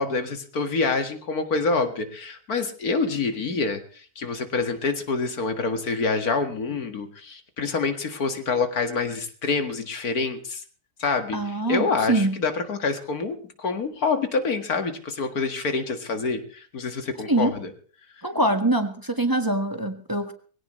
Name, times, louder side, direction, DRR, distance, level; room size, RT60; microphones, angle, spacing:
voice 1, 0.0-10.6 11.0-17.7, left 4 dB, 85° left, 7 dB, 2.4 m, -27 dB
voice 2, 11.3-12.4 17.3-17.5 18.2-20.3, right 1 dB, 15° right, 6 dB, 1.4 m, -24 dB
21.5 x 17.0 x 3.2 m, 0.43 s
omnidirectional pair, 1.5 m